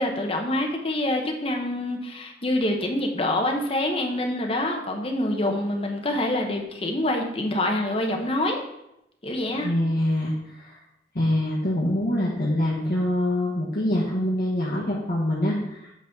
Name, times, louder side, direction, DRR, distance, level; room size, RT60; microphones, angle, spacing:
voice 1, 0.0-8.6 9.2-9.7, left 1 dB, 35° left, 2 dB, 1.0 m, -26 dB
voice 2, 9.5-10.8 11.1-15.9, left 1 dB, 55° left, -6 dB, 1.5 m, -25 dB
8.2 x 4.1 x 5.8 m, 0.85 s
head